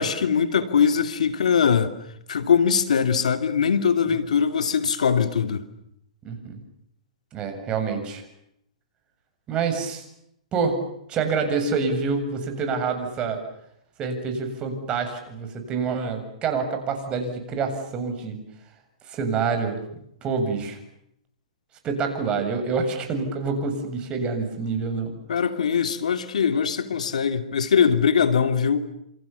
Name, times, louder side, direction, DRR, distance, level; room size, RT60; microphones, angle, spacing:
voice 1, 0.0-1.9 2.3-5.6 25.3-28.9, left 7 dB, 85° left, 2.9 m, -21 dB
voice 2, 6.2-6.6 7.3-8.2 9.5-10.1 10.5-10.8 11.1-13.4 14.0-18.4 19.1-19.8 20.2-20.8 21.8-25.1, right 5 dB, 25° right, 7.4 m, -27 dB
28.5 x 28.0 x 7.1 m
hypercardioid pair, 135°, 4 cm